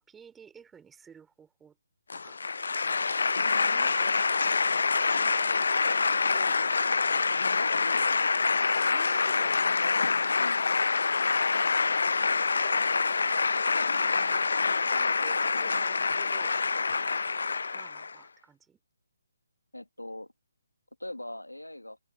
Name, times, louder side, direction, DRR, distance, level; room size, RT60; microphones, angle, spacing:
voice 1, 0.0-1.8 2.2-2.4 2.8-3.1 3.6-4.3 5.1-5.5 6.3-7.0 8.7-9.9 11.3-11.9 12.6-12.9 14.0-14.4 14.9-16.6 17.7-18.8, right 7 dB, 10° right, 5.1 m, -53 dB
sound 1, 2.1-18.1, left 4 dB, 65° left, 0.7 m, -26 dB
voice 2, 7.6-8.2 10.4-10.7 19.7-20.3 21.0-22.0, left 1 dB, 90° left, 2.6 m, -41 dB
figure-of-eight pair, 140°, 0 cm